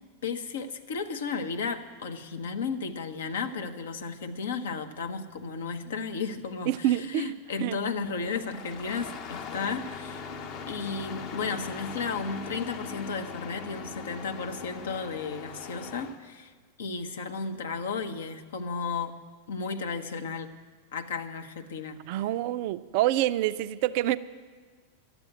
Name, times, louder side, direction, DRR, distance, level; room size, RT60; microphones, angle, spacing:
voice 1, 0.2-10.2 10.7-16.5 16.8-19.1 19.5-20.5 20.9-22.0, left 5 dB, 60° left, 7 dB, 0.9 m, -34 dB
voice 2, 6.7-7.3 7.6-7.8 22.0-24.2, right 14 dB, 45° right, 15 dB, 0.4 m, -27 dB
Engine starting, 8.0-16.2, left 5 dB, 40° left, 1.1 m, -40 dB
11.5 x 8.1 x 9.9 m, 1.5 s
figure-of-eight pair, 90°, 0 cm